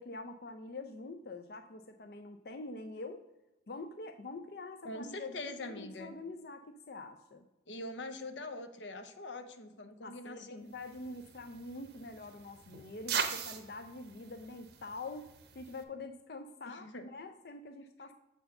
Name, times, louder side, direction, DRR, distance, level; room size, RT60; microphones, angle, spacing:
voice 1, 0.0-3.2 3.7-7.4 10.0-15.3 15.5-18.1, left 2 dB, 55° left, 6 dB, 0.5 m, -45 dB
voice 2, 4.8-6.1 7.7-10.7 16.7-17.1, left 2 dB, 85° left, 8 dB, 0.9 m, -43 dB
sound 1, 10.7-15.8, right 6 dB, 65° right, 0.8 m, -41 dB
7.6 x 4.6 x 5.3 m, 0.99 s
head